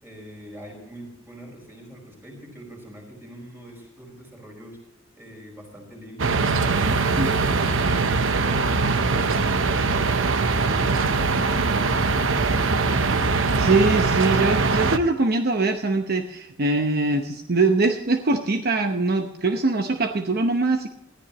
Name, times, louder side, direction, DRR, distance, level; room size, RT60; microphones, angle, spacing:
voice 1, 0.0-4.8 5.2-10.1, equal, 10° right, 1 dB, 5.3 m, -43 dB
sound 1, 6.2-15.0, right 4 dB, 80° right, 0.9 m, -22 dB
voice 2, 13.6-20.9, right 3 dB, 50° right, 6 dB, 0.9 m, -22 dB
20.0 x 14.0 x 3.0 m, 0.87 s
head